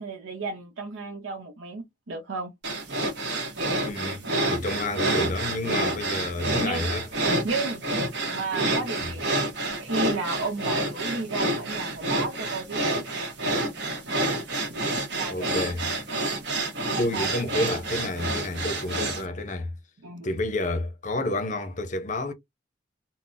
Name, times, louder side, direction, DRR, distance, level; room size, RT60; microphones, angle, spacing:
voice 1, 0.0-2.5 6.6-6.9 7.4-7.8 8.2-9.3 9.8-12.8 15.1-15.5 16.9-17.3 20.0-20.3, right 3 dB, 90° right, 0.7 m, -32 dB
sound 1, 2.6-19.2, right 2 dB, 60° right, 1.0 m, -28 dB
voice 2, 3.8-7.1 9.0-9.2 15.3-16.0 17.0-19.7 20.2-22.3, left 2 dB, 40° left, 0.6 m, -30 dB
3.8 x 2.1 x 2.5 m
head